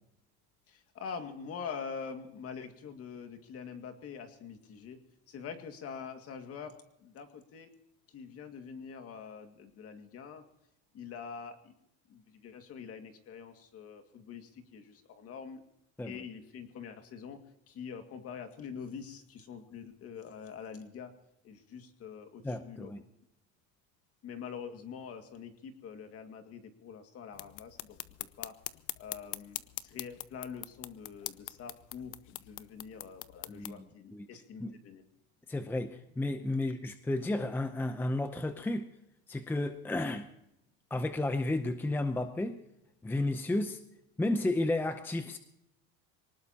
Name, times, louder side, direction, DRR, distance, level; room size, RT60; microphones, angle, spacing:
voice 1, 0.7-5.0 5.3-7.7 8.1-10.4 10.9-11.7 12.1-15.6 16.0-17.4 17.7-21.1 21.4-22.9 24.2-28.0 28.4-28.5 29.0-35.0, left 6 dB, 45° left, 2.1 m, -45 dB
voice 2, 22.4-23.0 33.5-33.8 34.1-34.3 34.6-34.7 35.5-38.9 39.3-40.3 40.9-42.6 43.0-43.8 44.2-45.4, left 2 dB, 5° left, 0.7 m, -32 dB
sound 1, 27.3-33.8, left 17 dB, 60° left, 0.8 m, -43 dB
24.5 x 19.0 x 2.9 m
cardioid pair, 145°, 34 cm